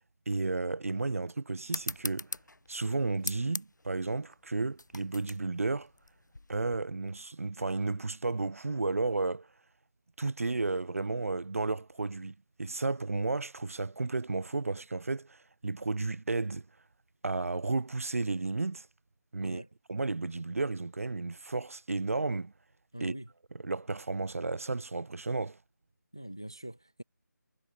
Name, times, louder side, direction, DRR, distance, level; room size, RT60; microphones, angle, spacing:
voice 1, 0.3-2.3 2.7-5.9 6.5-9.5 10.2-16.7 17.2-18.9 19.3-19.6 19.9-22.5 23.0-23.1 23.6-25.6, right 3 dB, 50° right, 0.5 m, -33 dB
sound 1, 1.7-6.8, left 2 dB, 80° left, 2.4 m, -41 dB
voice 2, 22.9-23.3 26.1-27.0, right 1 dB, 15° left, 0.3 m, -43 dB
figure-of-eight pair, 175°, 10 cm